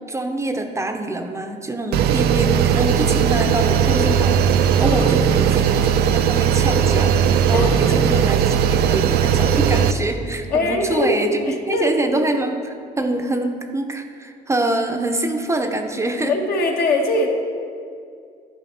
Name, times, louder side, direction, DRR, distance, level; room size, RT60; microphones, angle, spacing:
voice 1, 0.0-16.4, right 1 dB, 15° right, 5 dB, 0.6 m, -25 dB
sound 1, 1.9-9.9, right 8 dB, 70° right, 0.4 m, -18 dB
voice 2, 4.9-5.5 7.5-8.1 10.5-11.9 16.3-17.3, left 2 dB, 65° left, 2 dB, 1.1 m, -22 dB
11.5 x 4.9 x 4.2 m, 2.3 s
cardioid pair, 110°, 17 cm